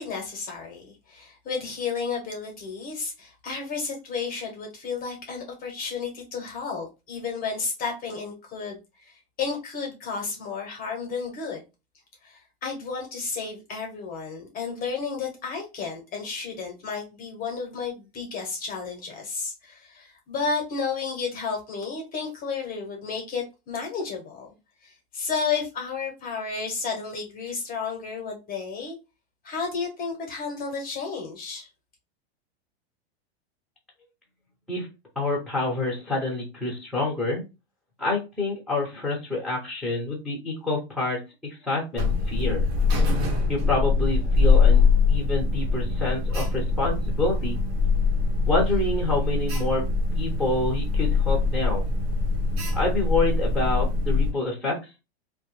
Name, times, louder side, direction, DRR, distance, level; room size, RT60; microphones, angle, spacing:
voice 1, 0.0-11.6 12.2-24.5 24.8-28.9 29.4-31.7, left 5 dB, 30° left, 0.8 m, -32 dB
voice 2, 35.2-37.4 38.0-42.7 43.5-47.6 48.5-49.8 50.1-51.8 52.7-54.8, left 2 dB, ahead, 0.8 m, -27 dB
Alarm, 41.9-54.3, left 4 dB, 70° right, 1.0 m, -23 dB
2.1 x 2.1 x 3.0 m
hypercardioid pair, 125°, 31 cm